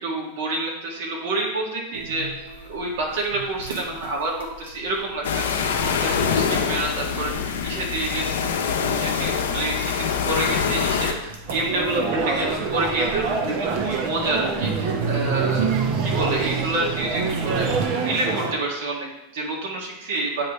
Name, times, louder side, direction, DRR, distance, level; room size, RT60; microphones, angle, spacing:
voice 1, 0.0-20.5, right 2 dB, 70° right, -2 dB, 2.2 m, -28 dB
sound 1, 1.9-4.9 5.3-5.5 5.8-5.9 6.2-6.3 6.6-7.6 8.0-8.5 8.7-13.3 13.7-17.9, right 5 dB, 85° right, 1.1 m, -30 dB
sound 2, 5.2-11.1, left 6 dB, 85° left, 0.7 m, -24 dB
sound 3, 11.5-18.5, right 4 dB, 50° right, 0.9 m, -26 dB
8.9 x 3.3 x 3.3 m, 0.96 s
hypercardioid pair, 110°, 0 cm